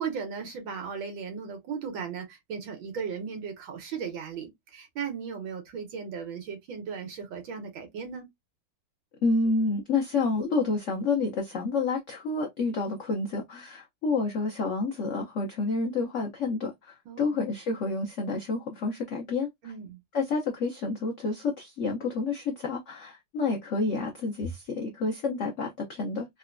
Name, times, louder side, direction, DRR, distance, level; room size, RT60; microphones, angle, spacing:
voice 1, 0.0-8.3 17.1-17.4 19.6-20.0, right 6 dB, 75° right, 1.8 m, -36 dB
voice 2, 9.2-19.7 20.1-26.3, left 3 dB, 90° left, 0.6 m, -29 dB
3.9 x 2.1 x 2.5 m
omnidirectional pair, 2.2 m